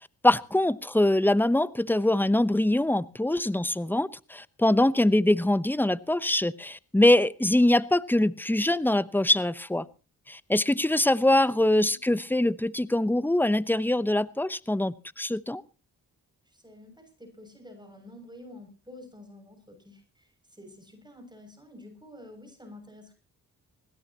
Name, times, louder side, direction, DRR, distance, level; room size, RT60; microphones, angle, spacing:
voice 1, 0.2-9.9 10.3-15.6, left 1 dB, 5° left, 17 dB, 0.9 m, -23 dB
voice 2, 16.4-23.1, left 1 dB, 10° right, 5 dB, 6.8 m, -49 dB
21.0 x 17.0 x 2.9 m, 0.34 s
cardioid pair, 55°, 38 cm